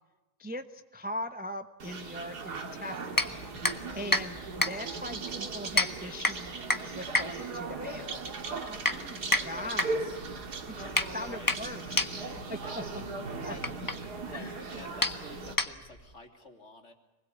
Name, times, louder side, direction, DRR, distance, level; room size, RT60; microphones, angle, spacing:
voice 1, 0.4-3.4 3.9-6.6 6.9-8.1 8.7-10.0 10.8-12.1 12.5-13.0 13.4-13.5 14.3-14.5, left 1 dB, 10° right, 7 dB, 0.7 m, -40 dB
sound 1, 1.8-15.5, right 3 dB, 85° right, 2.6 m, -38 dB
sound 2, 3.1-16.1, left 2 dB, 15° left, 1.2 m, -32 dB
voice 2, 5.2-6.0 9.4-10.2 11.2-11.6 13.3-13.7 14.2-16.9, left 1 dB, 45° left, 4 dB, 3.2 m, -49 dB
26.0 x 20.5 x 8.4 m, 1.1 s
omnidirectional pair, 1.7 m